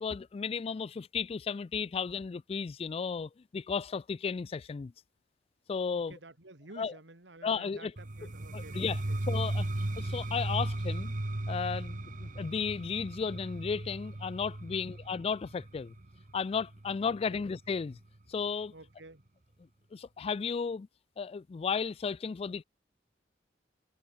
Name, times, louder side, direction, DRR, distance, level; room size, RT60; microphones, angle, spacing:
voice 1, 0.0-4.9 5.7-6.1 6.8-6.9 7.4-7.9 8.5-9.0 9.3-9.7 10.0-11.1 11.5-15.9 16.3-18.0 18.3-18.7 19.9-20.9 21.2-22.6, left 5 dB, 35° left, 0.3 m, -34 dB
voice 2, 5.9-9.2 14.7-15.0 17.1-17.5 18.7-19.2, right 2 dB, 75° right, 2.9 m, -52 dB
sound 1, 8.0-17.7, right 1 dB, 45° right, 1.3 m, -36 dB
head